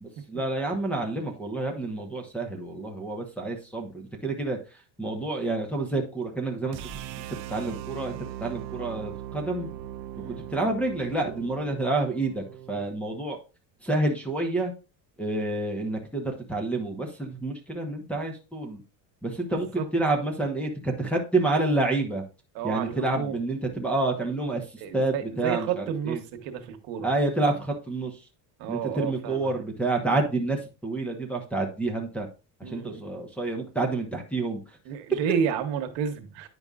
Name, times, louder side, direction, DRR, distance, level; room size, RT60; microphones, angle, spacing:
voice 1, 0.0-4.6 5.0-6.8 7.5-9.7 10.5-13.4 13.8-14.7 15.2-18.8 19.2-22.2 22.6-24.7 24.9-26.2 27.0-28.2 28.7-32.3 32.6-34.6, right 2 dB, 5° left, 0.9 m, -28 dB
sound 1, 6.7-12.9, right 12 dB, 60° right, 0.6 m, -39 dB
voice 2, 10.1-10.5 19.5-19.9 22.5-23.4 24.8-27.1 28.6-29.5 32.6-33.2 34.8-36.5, right 8 dB, 75° right, 1.2 m, -31 dB
9.7 x 5.2 x 2.4 m
cardioid pair, 155°, 43 cm